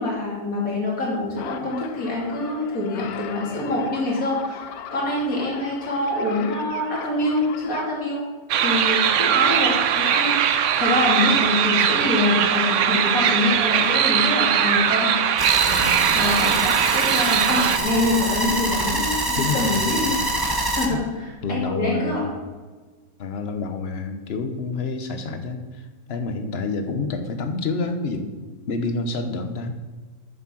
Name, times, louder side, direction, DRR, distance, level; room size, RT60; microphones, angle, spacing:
voice 1, 0.0-4.6 4.9-8.2 8.6-15.2 16.1-20.1 20.8-22.2, left 2 dB, 70° left, -3 dB, 3.3 m, -25 dB
sound 1, 1.4-8.0, left 9 dB, 85° left, 1.2 m, -39 dB
sound 2, 8.5-17.8, right 9 dB, 65° right, 0.9 m, -20 dB
sound 3, 15.4-20.9, right 2 dB, 20° right, 0.9 m, -25 dB
voice 2, 15.7-16.2 19.4-19.9 20.9-21.0 21.4-22.3 23.2-28.3 28.7-29.7, left 3 dB, 50° left, 7 dB, 1.1 m, -28 dB
9.3 x 6.5 x 6.2 m, 1.4 s
omnidirectional pair, 1.5 m